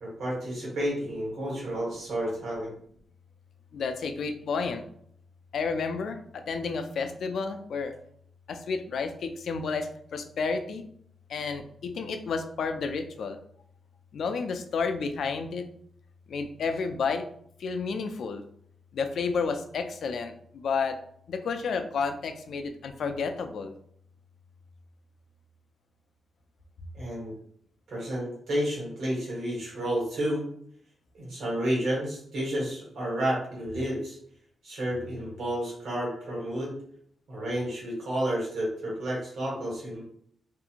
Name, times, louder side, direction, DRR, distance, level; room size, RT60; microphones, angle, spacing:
voice 1, 0.0-2.7 26.9-27.3 27.9-30.5 31.1-34.2 34.6-36.7 37.3-40.0, right 1 dB, 80° right, -4 dB, 1.3 m, -31 dB
voice 2, 3.7-4.8 5.5-7.9 8.5-10.8 11.3-13.4 14.1-15.7 16.3-17.2 17.6-18.4 18.9-21.0 21.3-23.7, left 5 dB, 70° left, 7 dB, 0.3 m, -31 dB
2.6 x 2.4 x 2.8 m, 0.66 s
wide cardioid pair, 170°, 0 cm